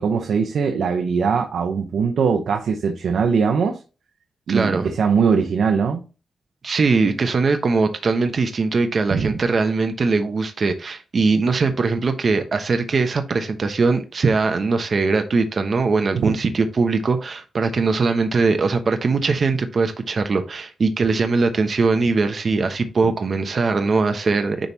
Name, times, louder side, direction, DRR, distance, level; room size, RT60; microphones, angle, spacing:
voice 1, 0.0-3.8 4.5-6.0 9.1-9.4 16.1-16.4, right 6 dB, 75° right, 0.8 m, -21 dB
voice 2, 4.5-4.9 6.6-24.7, right 4 dB, 45° right, 1.0 m, -21 dB
10.0 x 3.5 x 2.8 m
cardioid pair, 100°, 0 cm